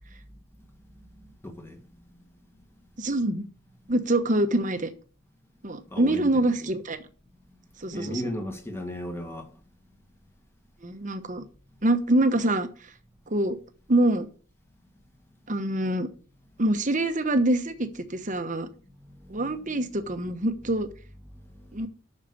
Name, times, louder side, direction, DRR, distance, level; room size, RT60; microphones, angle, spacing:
voice 1, 0.9-2.2 3.8-3.9 5.9-6.3 6.6-6.7 7.9-9.5 19.0-19.5 21.3-21.8, equal, 10° left, 1.6 m, -37 dB
voice 2, 3.0-3.5 3.9-4.9 5.6-7.0 7.8-8.2 10.8-11.4 11.8-12.9 13.3-13.6 13.9-14.3 15.5-16.1 16.6-18.7 19.3-20.9 21.7-21.9, right 1 dB, 35° right, 1.0 m, -25 dB
8.7 x 6.6 x 6.8 m
head